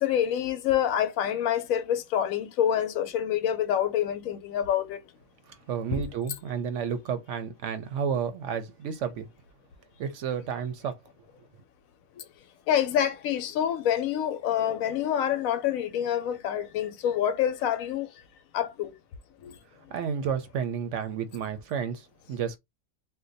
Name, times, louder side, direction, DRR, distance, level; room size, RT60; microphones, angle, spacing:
voice 1, 0.0-5.0 5.9-6.0 12.7-18.1 18.5-18.9 19.4-19.5, left 10 dB, 75° left, 1.0 m, -27 dB
voice 2, 5.5-9.3 10.0-11.0 19.9-22.6, right 7 dB, 65° right, 0.9 m, -31 dB
2.6 x 2.2 x 3.9 m
omnidirectional pair, 1.5 m